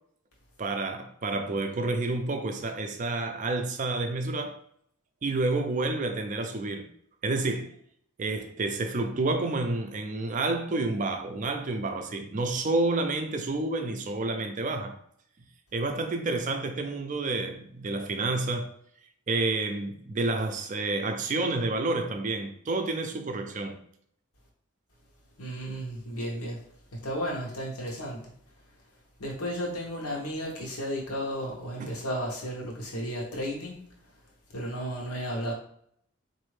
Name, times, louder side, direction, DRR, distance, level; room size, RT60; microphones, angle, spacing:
voice 1, 0.6-4.6 5.2-6.9 7.2-7.7 8.2-15.0 15.7-18.7 19.3-23.8 31.8-31.9, right 2 dB, 35° right, 0.4 m, -29 dB
voice 2, 25.4-28.3 29.2-33.8 34.5-35.5, equal, 85° left, 1.0 m, -34 dB
4.2 x 2.6 x 3.2 m
head